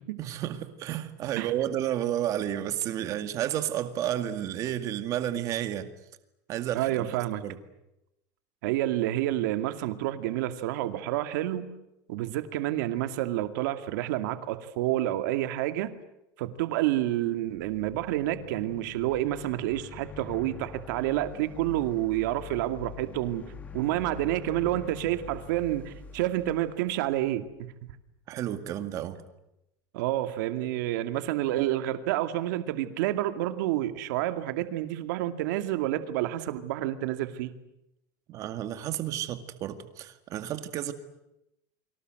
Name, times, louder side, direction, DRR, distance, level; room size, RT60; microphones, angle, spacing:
voice 1, 0.2-5.9 6.5-7.6 28.3-29.2 38.3-40.9, right 11 dB, 30° right, 9 dB, 2.1 m, -31 dB
voice 2, 6.7-7.4 8.6-11.7 12.1-15.9 16.4-23.5 23.7-27.7 29.9-37.5, right 14 dB, 70° right, 9 dB, 2.3 m, -29 dB
sound 1, 17.4-27.6, left 7 dB, 15° left, 2.0 m, -46 dB
30.0 x 24.5 x 7.9 m, 0.87 s
cardioid pair, 180°, 10 cm